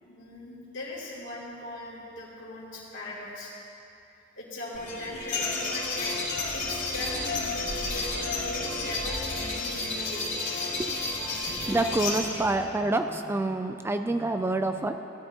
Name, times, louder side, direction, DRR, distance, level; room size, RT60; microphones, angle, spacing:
voice 1, 0.0-3.5 4.4-6.2 6.5-10.3, left 1 dB, 70° left, -5 dB, 2.9 m, -39 dB
sound 1, 4.7-12.5, left 3 dB, 40° left, 2.4 m, -31 dB
voice 2, 11.4-15.0, right 2 dB, 15° right, 7 dB, 0.3 m, -27 dB
17.0 x 11.5 x 2.9 m, 2.7 s
head